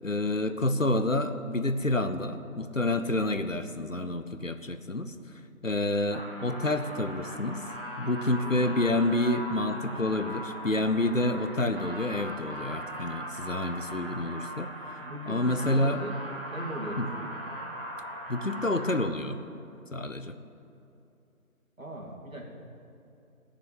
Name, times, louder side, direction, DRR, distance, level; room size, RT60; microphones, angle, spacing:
voice 1, 0.0-5.1 5.6-7.6 8.0-14.7 15.3-16.0 17.0-17.1 18.3-19.4 19.9-20.3, left 2 dB, 60° left, 9 dB, 0.8 m, -28 dB
sound 1, 6.1-19.1, equal, 40° left, 1.5 m, -39 dB
voice 2, 8.4-8.8 14.9-16.2 16.5-17.3 21.8-22.4, right 1 dB, 65° right, -1 dB, 2.7 m, -39 dB
15.0 x 6.9 x 9.1 m, 2.7 s
figure-of-eight pair, 180°, 43 cm